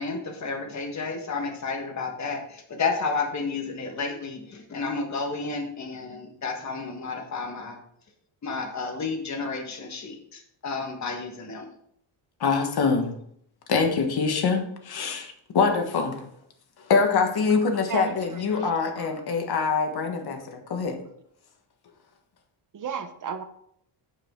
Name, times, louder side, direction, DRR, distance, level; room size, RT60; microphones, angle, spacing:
voice 1, 0.0-7.8 8.4-11.7, left 4 dB, 35° left, 2 dB, 1.6 m, -31 dB
voice 2, 12.4-13.1 13.7-16.2 16.9-21.0, left 5 dB, 50° left, 4 dB, 1.4 m, -24 dB
voice 3, 17.9-18.7 19.0-19.1 22.7-23.4, right 7 dB, 40° right, 9 dB, 0.9 m, -35 dB
9.0 x 6.8 x 3.7 m, 0.70 s
cardioid pair, 145°, 50 cm